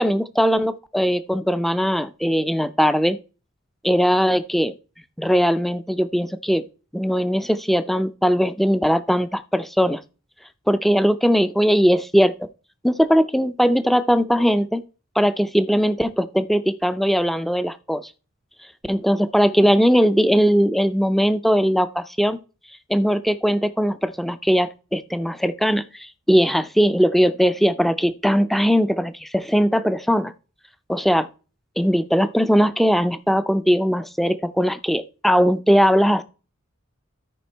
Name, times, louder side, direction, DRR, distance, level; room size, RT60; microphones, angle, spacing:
voice 1, 0.0-3.2 3.8-4.7 5.2-6.7 6.9-10.0 10.7-12.5 12.8-14.8 15.2-18.1 18.9-22.4 22.9-30.3 30.9-31.3 31.8-36.2, equal, ahead, 0.4 m, -19 dB
13.0 x 5.0 x 4.5 m
head